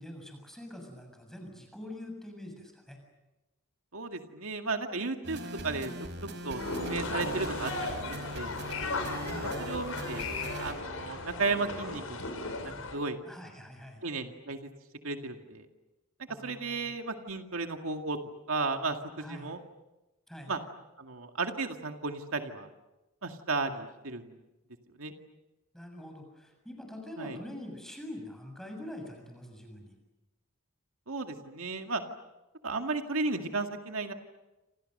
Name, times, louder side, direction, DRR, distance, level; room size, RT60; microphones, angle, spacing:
voice 1, 0.0-3.0 9.2-9.6 13.2-14.0 16.3-16.9 19.2-19.5 20.3-20.5 25.7-29.9, left 1 dB, ahead, 3 dB, 7.1 m, -44 dB
voice 2, 3.9-5.9 6.4-8.6 9.6-10.3 10.6-13.2 14.0-14.6 15.0-15.7 16.4-18.2 18.5-19.6 20.5-20.6 21.0-22.7 23.2-24.3 25.0-25.1 27.2-27.4 31.1-32.0 32.6-34.1, right 3 dB, 80° right, 5 dB, 2.1 m, -34 dB
sound 1, 5.2-10.7, right 1 dB, 55° right, 4.8 m, -40 dB
sound 2, 6.6-12.9, left 3 dB, 80° left, 5.9 m, -36 dB
28.5 x 28.5 x 6.7 m, 1.0 s
head